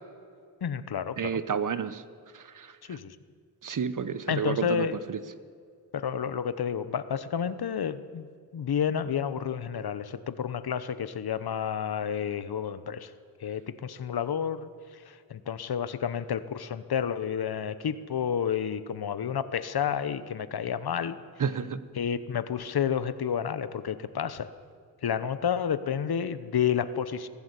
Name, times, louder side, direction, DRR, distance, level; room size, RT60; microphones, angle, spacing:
voice 1, 0.6-1.4 2.9-3.2 4.3-5.0 5.9-8.3 8.5-13.1 13.4-21.2 22.0-24.5 25.0-27.3, left 8 dB, 75° left, 13 dB, 1.0 m, -30 dB
voice 2, 1.2-2.0 2.3-3.0 3.6-5.2 21.4-21.8, right 6 dB, 55° right, 14 dB, 1.0 m, -31 dB
22.5 x 15.5 x 8.2 m, 2.2 s
wide cardioid pair, 130°, 38 cm